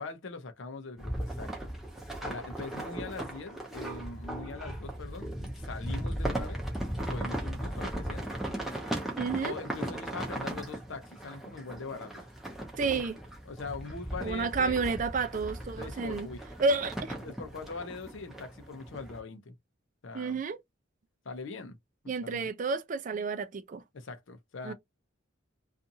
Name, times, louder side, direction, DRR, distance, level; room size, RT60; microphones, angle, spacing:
voice 1, 0.0-1.7 2.2-6.6 7.0-8.3 9.4-12.2 12.8-13.0 13.5-14.8 15.8-16.4 17.2-19.6 20.0-20.4 21.2-21.8 22.2-22.5 23.9-24.7, left 4 dB, 65° left, 0.6 m, -42 dB
sound 1, 1.0-19.2, right 1 dB, ahead, 0.6 m, -37 dB
voice 2, 9.2-9.5 12.8-13.1 14.2-16.3 16.6-17.1 20.1-20.6 22.1-23.8 24.6-24.7, right 4 dB, 40° right, 0.4 m, -30 dB
2.5 x 2.5 x 2.7 m
head